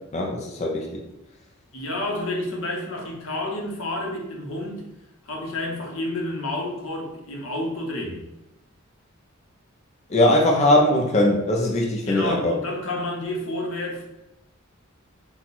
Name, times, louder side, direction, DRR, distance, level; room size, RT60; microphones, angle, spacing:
voice 1, 0.1-0.9 10.1-12.5, left 1 dB, 35° left, 0 dB, 0.5 m, -20 dB
voice 2, 1.7-4.8 5.2-8.3 12.0-14.1, left 1 dB, 85° left, -1 dB, 1.0 m, -30 dB
4.2 x 2.3 x 4.1 m, 0.92 s
head